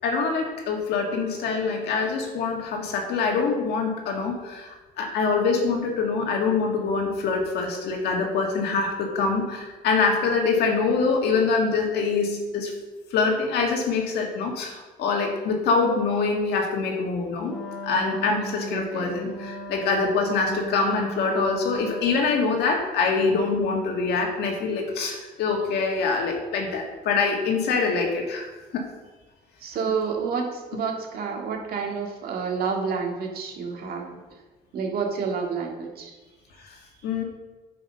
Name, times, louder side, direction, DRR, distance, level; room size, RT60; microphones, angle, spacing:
voice 1, 0.0-4.7 5.0-12.7 13.1-17.6 17.8-28.8 37.0-37.2, left 4 dB, 75° left, 1 dB, 2.0 m, -24 dB
Wind instrument woodwind instrument, 17.4-22.6, equal, 5° left, 2.0 m, -37 dB
voice 2, 18.7-19.3 29.6-34.2 34.7-36.1, right 5 dB, 65° right, 1 dB, 1.9 m, -29 dB
9.8 x 5.8 x 5.4 m, 1.2 s
cardioid pair, 110°, 17 cm